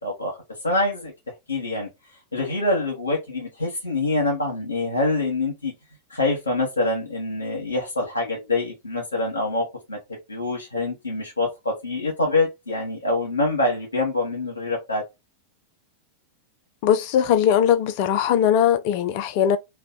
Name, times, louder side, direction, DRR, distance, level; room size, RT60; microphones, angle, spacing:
voice 1, 0.0-0.4 0.6-1.1 1.5-1.9 2.3-5.7 6.1-10.0 10.3-15.0, left 2 dB, 80° left, 1.1 m, -25 dB
voice 2, 16.8-19.6, left 9 dB, 45° left, 0.5 m, -20 dB
3.2 x 2.3 x 3.8 m
figure-of-eight pair, 90°, 0 cm